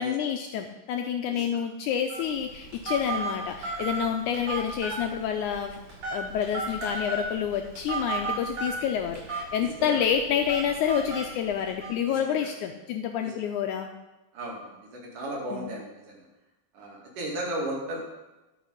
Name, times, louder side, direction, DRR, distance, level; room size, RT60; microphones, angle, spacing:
voice 1, 0.0-5.8 6.1-13.9 15.5-15.7, left 8 dB, 80° left, 4 dB, 1.8 m, -28 dB
Telephone, 2.1-11.9, right 3 dB, 45° right, 5.0 m, -35 dB
voice 2, 12.1-12.5 13.2-13.3 14.3-15.9 16.7-18.0, right 1 dB, 70° right, -2 dB, 3.8 m, -35 dB
12.5 x 6.4 x 5.3 m, 1.1 s
omnidirectional pair, 4.0 m